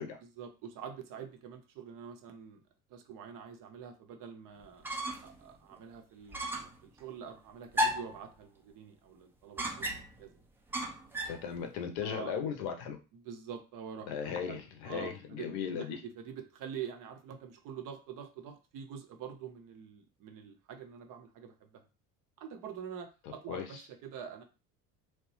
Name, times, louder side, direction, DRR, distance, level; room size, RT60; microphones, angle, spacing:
voice 1, 0.2-2.6 2.9-4.9 5.2-10.3 12.0-12.4 13.1-21.8 22.4-24.4, right 7 dB, 40° right, 6 dB, 0.6 m, -46 dB
sound 1, 4.6-5.4 5.7-5.8 6.3-6.8 7.7-8.2 9.6-10.2 10.7-11.4, equal, 5° right, 0.3 m, -34 dB
voice 2, 11.3-13.0 14.1-16.0 23.5-23.7, left 7 dB, 55° left, 5 dB, 0.7 m, -37 dB
3.0 x 2.1 x 3.1 m, 0.31 s
figure-of-eight pair, 60°, 50 cm